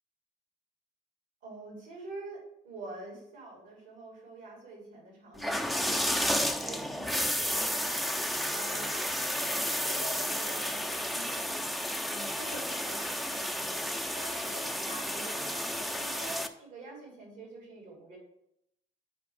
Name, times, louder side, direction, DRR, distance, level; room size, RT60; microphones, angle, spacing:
voice 1, 1.4-9.1 9.5-11.7 12.1-13.8 14.2-18.2, right 2 dB, 70° right, -2 dB, 3.0 m, -46 dB
sound 1, 5.4-16.5, equal, ahead, 0.6 m, -32 dB
9.5 x 4.6 x 3.5 m, 0.79 s
hypercardioid pair, 45°, 21 cm